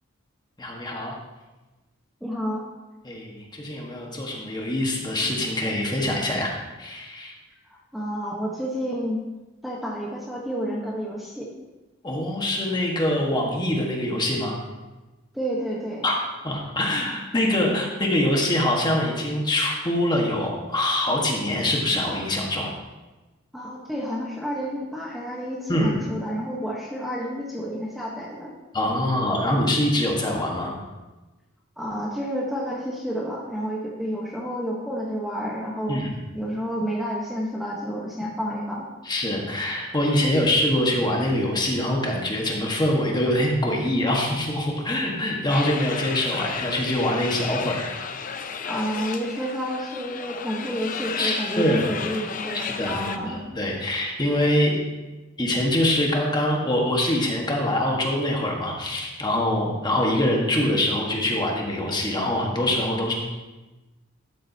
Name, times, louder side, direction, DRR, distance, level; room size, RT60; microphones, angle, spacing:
voice 1, 0.6-1.1 3.0-6.5 6.8-7.3 12.0-14.6 16.0-16.1 16.4-22.7 25.7-25.9 28.7-30.7 35.9-36.1 39.0-48.0 51.2-51.9 52.8-54.8 55.4-63.1, left 1 dB, 20° left, -1 dB, 1.4 m, -24 dB
voice 2, 2.2-2.6 7.7-9.2 9.6-11.5 15.3-16.1 23.5-28.5 31.8-36.0 36.3-38.9 48.6-53.4, equal, ahead, -4 dB, 1.1 m, -30 dB
sound 1, 45.5-53.2, left 6 dB, 45° left, 0.6 m, -33 dB
12.0 x 7.6 x 2.8 m, 1.1 s
head